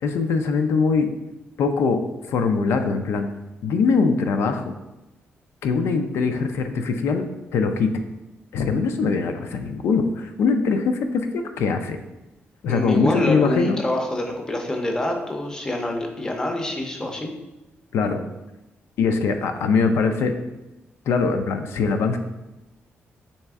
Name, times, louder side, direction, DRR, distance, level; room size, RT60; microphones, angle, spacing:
voice 1, 0.0-1.1 1.6-3.3 3.6-4.7 5.6-7.3 7.5-8.0 8.5-12.0 12.6-13.8 17.9-18.2 19.0-20.3 21.1-22.2, left 4 dB, 80° left, 6 dB, 0.4 m, -22 dB
voice 2, 12.7-17.3, left 1 dB, 15° left, 3 dB, 0.5 m, -26 dB
4.1 x 3.3 x 3.5 m, 1.0 s
wide cardioid pair, 175°, 4 cm